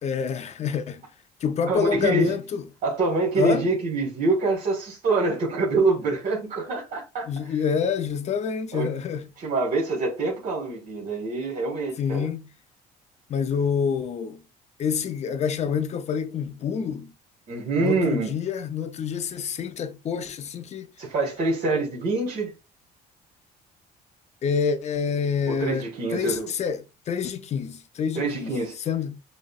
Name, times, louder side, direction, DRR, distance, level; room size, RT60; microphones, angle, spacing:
voice 1, 0.0-1.0 1.4-2.6 3.4-3.7 7.3-9.3 12.0-12.5 13.3-14.4 14.8-17.1 17.8-20.9 24.4-25.8 26.1-28.6 28.9-29.1, left 6 dB, 40° left, 0.5 m, -27 dB
voice 2, 1.7-2.4 2.8-7.3 8.7-8.9 9.4-12.3 17.5-18.4 21.0-22.5 25.5-26.5 28.1-28.8, right 3 dB, 55° right, 1.4 m, -25 dB
6.2 x 2.1 x 2.4 m
cardioid pair, 110°, 17 cm